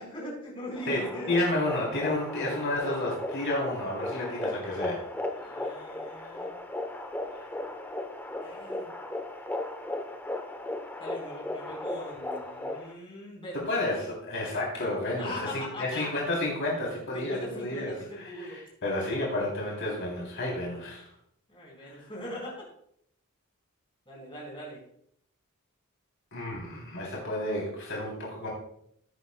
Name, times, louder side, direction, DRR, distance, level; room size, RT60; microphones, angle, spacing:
voice 1, 0.0-1.5 5.4-6.5 8.4-8.9 11.0-13.7 15.2-16.3 17.1-18.6 21.5-22.7 24.1-24.8, left 1 dB, 25° left, -3 dB, 4.1 m, -41 dB
sound 1, 0.8-12.9, left 1 dB, 10° left, 0.8 m, -36 dB
voice 2, 0.9-5.0 5.4-5.8 6.2-6.4 7.4-7.5 13.5-21.1 21.8-21.9 26.3-28.5, left 1 dB, 55° left, -3 dB, 3.1 m, -31 dB
17.0 x 9.4 x 2.2 m, 0.69 s
head